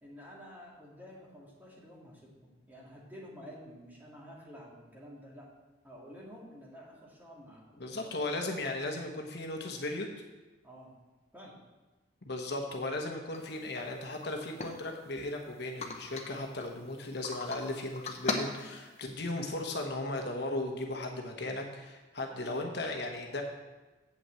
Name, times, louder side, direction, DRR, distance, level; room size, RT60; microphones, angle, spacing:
voice 1, 0.0-5.5 5.8-7.8 10.6-10.9 11.3-11.6, equal, 10° right, -5 dB, 2.2 m, -50 dB
voice 2, 7.8-10.1 12.3-23.4, left 2 dB, 60° left, 2 dB, 1.1 m, -36 dB
sound 1, 13.3-13.4 13.8-13.9 14.2-15.3 15.8-16.7 17.2-17.6 17.9-19.1, left 3 dB, 35° left, 0.9 m, -38 dB
8.0 x 6.0 x 7.6 m, 1.2 s
head